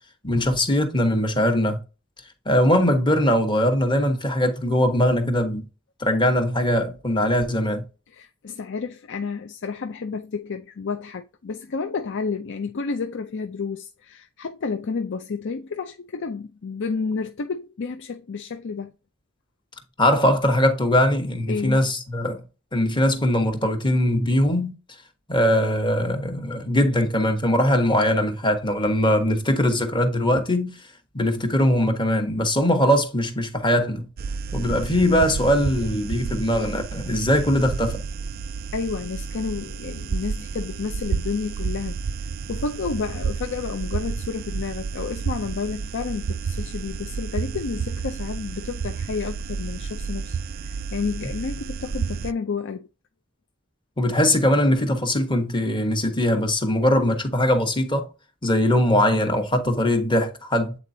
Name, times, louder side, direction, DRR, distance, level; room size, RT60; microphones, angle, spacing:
voice 1, 0.2-1.8 2.4-5.6 6.0-7.8 20.0-22.4 22.7-24.7 25.3-30.7 31.1-34.1 34.5-38.0 54.0-58.1 58.4-60.8, left 1 dB, 20° left, 1.2 m, -21 dB
voice 2, 8.1-18.9 21.5-21.9 38.7-42.0 42.5-52.9, left 5 dB, 60° left, 0.5 m, -30 dB
sound 1, 34.2-52.3, right 5 dB, 45° right, 0.3 m, -31 dB
8.3 x 4.2 x 2.7 m
head